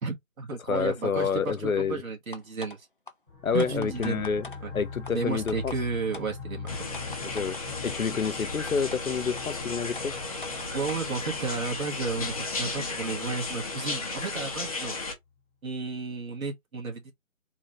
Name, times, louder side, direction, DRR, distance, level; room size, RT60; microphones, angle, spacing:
voice 1, 0.0-2.9 3.5-4.2 4.6-4.7 5.1-7.0 10.7-15.0 15.6-17.1, right 4 dB, 80° right, 1.8 m, -33 dB
voice 2, 0.6-2.0 3.4-4.5 4.7-5.7 7.2-7.6 7.8-10.1, left 6 dB, 85° left, 0.9 m, -28 dB
sound 1, 2.3-2.8 3.1-3.2 3.6-4.6 5.0-5.1 5.5-5.8 6.1-6.3 6.7-7.6 8.2-8.3 8.7-9.0 9.4-9.5 9.9-11.1, left 3 dB, 40° left, 0.4 m, -42 dB
sound 2, 3.3-14.6, left 5 dB, 10° right, 0.7 m, -43 dB
sound 3, 6.7-15.1, left 3 dB, 25° left, 0.9 m, -34 dB
3.7 x 3.3 x 3.0 m
figure-of-eight pair, 165°, 41 cm